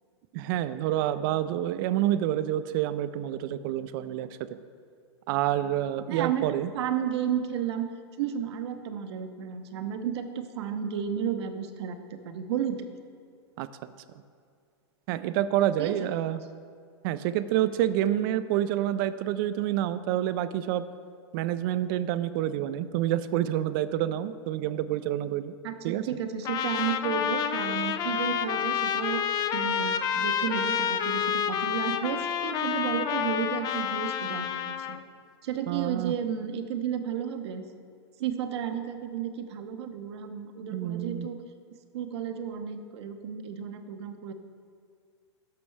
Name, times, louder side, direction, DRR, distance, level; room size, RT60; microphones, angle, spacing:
voice 1, 0.3-4.6 5.3-6.7 13.6-13.9 15.1-16.4 17.0-20.8 21.3-25.5 25.8-26.1 35.7-36.1 40.7-41.3, right 12 dB, 50° right, 13 dB, 0.4 m, -28 dB
voice 2, 6.1-7.9 8.2-12.9 15.8-15.9 25.6-29.2 29.5-35.0 35.4-37.7 38.2-41.4 41.9-44.3, right 8 dB, 65° right, 7 dB, 0.8 m, -32 dB
Trumpet, 26.5-35.0, left 8 dB, 25° left, 0.4 m, -29 dB
12.5 x 6.0 x 3.3 m, 2.1 s
hypercardioid pair, 120°, 15 cm